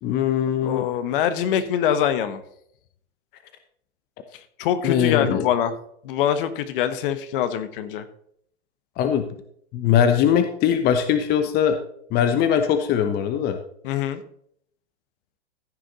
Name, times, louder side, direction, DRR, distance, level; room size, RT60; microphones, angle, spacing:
voice 1, 0.0-0.9 4.8-5.4 9.0-9.3 9.7-11.8 12.1-13.6, left 8 dB, 30° left, 8 dB, 1.0 m, -21 dB
voice 2, 0.6-2.4 4.6-5.7 6.0-8.1 13.8-14.2, left 9 dB, 50° left, 11 dB, 1.3 m, -24 dB
15.0 x 6.3 x 4.0 m, 0.68 s
hypercardioid pair, 120°, 34 cm